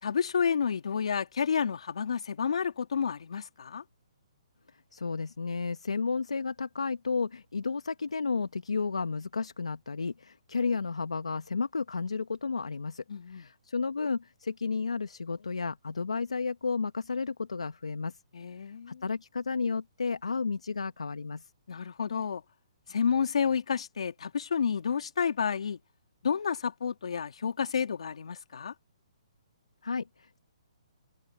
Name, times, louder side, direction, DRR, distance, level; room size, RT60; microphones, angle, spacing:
voice 1, 0.0-3.8 13.1-13.5 18.3-19.0 21.7-22.4 22.9-25.8 26.2-28.7, left 6 dB, 70° left, 2.7 m, -30 dB
voice 2, 4.9-18.2 18.9-21.5 29.8-30.4, left 4 dB, 90° left, 1.5 m, -32 dB
hypercardioid pair, 140°, 3 cm